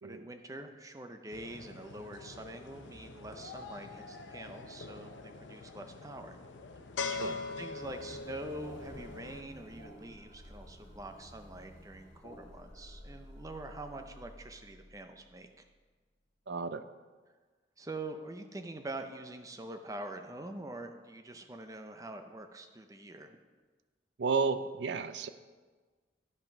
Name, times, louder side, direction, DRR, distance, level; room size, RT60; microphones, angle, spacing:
voice 1, 0.0-6.4 7.6-15.5 17.8-23.4, right 2 dB, 20° right, 6 dB, 0.5 m, -45 dB
sound 1, 1.3-9.4, left 4 dB, 85° left, 0.7 m, -43 dB
sound 2, 7.8-15.7, equal, 65° left, 1.4 m, -52 dB
voice 2, 16.5-16.8 24.2-25.3, right 5 dB, 70° right, 12 dB, 0.5 m, -32 dB
10.5 x 5.8 x 5.3 m, 1.4 s
head